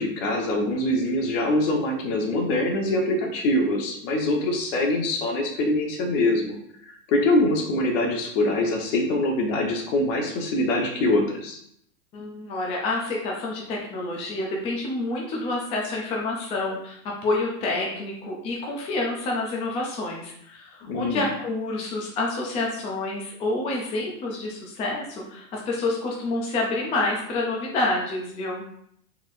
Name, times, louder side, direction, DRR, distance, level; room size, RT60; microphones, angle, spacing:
voice 1, 0.0-6.5 6.8-11.6 20.9-21.2, left 1 dB, 55° left, 1 dB, 1.3 m, -24 dB
voice 2, 12.1-28.6, left 2 dB, 15° left, -2 dB, 0.4 m, -28 dB
4.2 x 3.5 x 2.5 m, 0.71 s
supercardioid pair, 140°, 45 cm